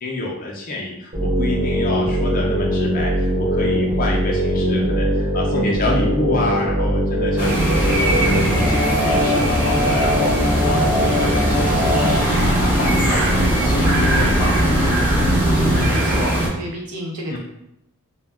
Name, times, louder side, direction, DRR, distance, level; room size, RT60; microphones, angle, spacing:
voice 1, 0.0-14.9 17.3-17.4, left 2 dB, 40° left, -2 dB, 0.4 m, -28 dB
sound 1, 1.1-15.9, equal, 30° right, 1.0 m, -21 dB
sound 2, 7.4-16.5, right 1 dB, 10° right, 0.6 m, -20 dB
voice 2, 15.5-17.4, right 1 dB, 85° right, -1 dB, 0.7 m, -30 dB
2.2 x 2.0 x 3.4 m, 0.80 s
head